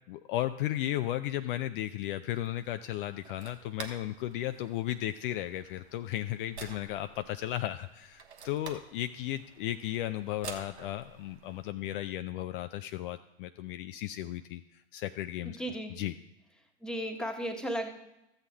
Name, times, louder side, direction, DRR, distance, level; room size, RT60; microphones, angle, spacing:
voice 1, 0.1-15.6 15.9-16.1, left 13 dB, 50° left, 10 dB, 0.5 m, -35 dB
sound 1, 2.4-11.7, right 6 dB, 80° right, 1.1 m, -50 dB
voice 2, 15.6-15.9 16.8-17.9, equal, ahead, 4 dB, 1.3 m, -34 dB
13.5 x 7.8 x 3.5 m, 0.89 s
figure-of-eight pair, 85°, 34 cm